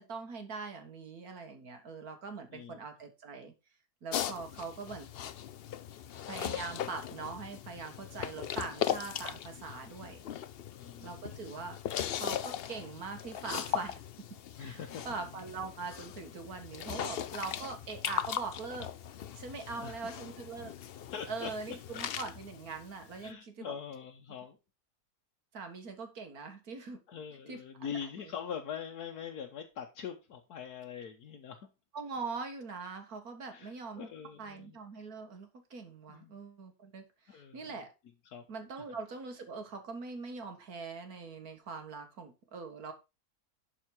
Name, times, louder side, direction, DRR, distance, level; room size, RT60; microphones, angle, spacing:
voice 1, 0.0-3.5 4.0-5.1 6.3-10.2 11.0-11.8 12.1-14.3 14.6-14.8 15.1-18.9 19.4-20.7 21.3-23.7 25.5-27.0 27.5-28.3 31.9-34.1 34.4-37.9 38.5-42.9, right 4 dB, 70° right, 2.0 m, -42 dB
sound 1, 4.1-23.3, left 10 dB, 60° left, 0.6 m, -39 dB
voice 2, 10.8-11.5 12.0-12.1 14.6-15.0 17.2-17.3 19.8-20.0 21.1-22.0 23.2-24.6 27.1-31.6 33.5-34.8 36.1-36.4 37.3-37.8 38.2-38.4, left 7 dB, 80° left, 1.5 m, -43 dB
12.0 x 4.9 x 4.7 m
omnidirectional pair, 1.6 m